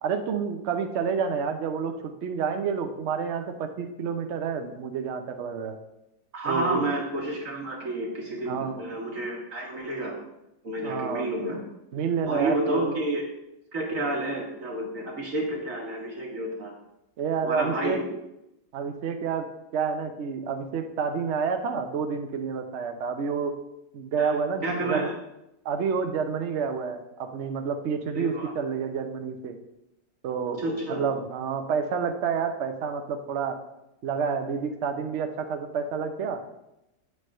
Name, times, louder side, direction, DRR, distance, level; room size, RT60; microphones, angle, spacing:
voice 1, 0.0-5.8 6.5-6.8 8.5-8.8 10.8-11.3 11.9-13.0 17.2-18.0 18.7-23.5 23.9-25.1 25.6-29.6 30.2-30.6 30.9-33.6 34.0-36.4, right 6 dB, 70° right, 6 dB, 0.6 m, -29 dB
voice 2, 6.3-10.1 10.6-11.6 12.3-13.2 13.7-16.7 17.4-18.0 24.2-24.4 24.6-25.1 28.1-28.5 30.6-31.1, right 1 dB, 50° right, -1 dB, 1.3 m, -30 dB
8.3 x 3.3 x 6.3 m, 0.88 s
omnidirectional pair, 2.0 m